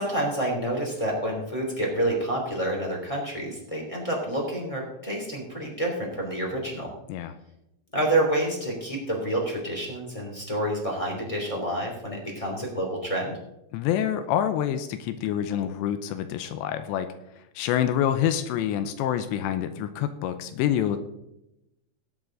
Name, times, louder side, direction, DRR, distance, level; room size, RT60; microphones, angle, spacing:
voice 1, 0.0-6.9 7.9-13.4, right 1 dB, 10° left, -1 dB, 2.3 m, -28 dB
voice 2, 13.7-17.1 17.6-21.0, left 10 dB, 90° left, 9 dB, 2.9 m, -27 dB
19.0 x 7.3 x 3.8 m, 0.87 s
omnidirectional pair, 5.1 m